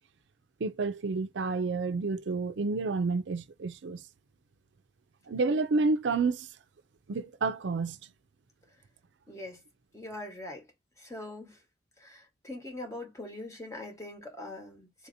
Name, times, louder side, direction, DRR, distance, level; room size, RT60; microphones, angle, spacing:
voice 1, 0.6-4.0 5.3-6.5 7.1-8.1, right 3 dB, 80° right, 0.5 m, -29 dB
voice 2, 9.3-9.6 9.9-10.7 11.0-11.6 12.0-15.1, left 1 dB, 15° left, 1.1 m, -42 dB
3.8 x 2.8 x 2.6 m
head